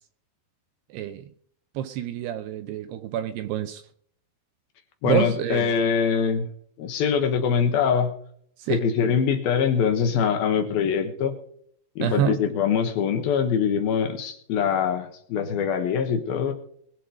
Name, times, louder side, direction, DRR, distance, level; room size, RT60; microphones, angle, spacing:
voice 1, 0.9-1.2 1.8-3.8 5.0-5.7 8.6-8.8 12.0-12.4, right 10 dB, 85° right, 2.4 m, -27 dB
voice 2, 5.0-6.5 6.8-8.1 8.7-11.3 12.0-16.5, left 7 dB, 65° left, 2.7 m, -23 dB
22.0 x 7.5 x 5.1 m
omnidirectional pair, 5.5 m